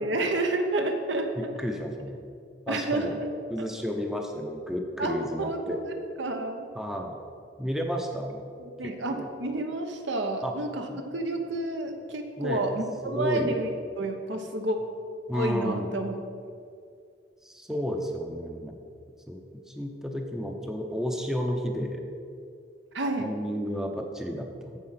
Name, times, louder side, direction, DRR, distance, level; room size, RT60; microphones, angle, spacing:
voice 1, 0.0-1.5 2.7-3.3 5.0-6.7 8.6-13.7 14.0-14.8 15.3-16.1 22.9-23.4, right 2 dB, 65° right, 5 dB, 1.0 m, -30 dB
voice 2, 1.4-2.2 2.7-3.2 3.5-5.8 6.7-7.2 7.6-8.4 9.1-9.3 10.4-10.5 10.9-11.0 12.4-12.7 13.0-13.6 15.3-15.9 17.4-18.8 19.3-22.0 23.2-24.8, equal, ahead, 2 dB, 0.7 m, -32 dB
14.0 x 4.8 x 5.8 m, 2.3 s
head